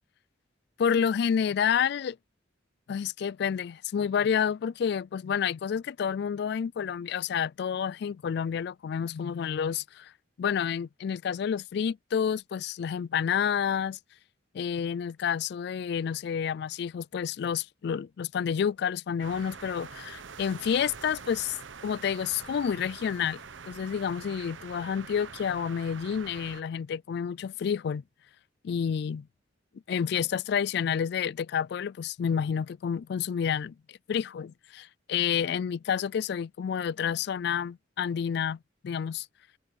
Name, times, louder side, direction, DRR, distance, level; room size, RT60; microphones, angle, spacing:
voice 1, 0.8-2.2 2.9-10.1 10.4-14.0 14.5-21.6 21.8-23.4 23.7-28.0 28.6-29.3 29.9-33.7 34.1-38.6 38.8-39.3, left 7 dB, 60° left, 0.3 m, -29 dB
sound 1, 19.2-26.6, right 5 dB, 85° right, 1.0 m, -45 dB
head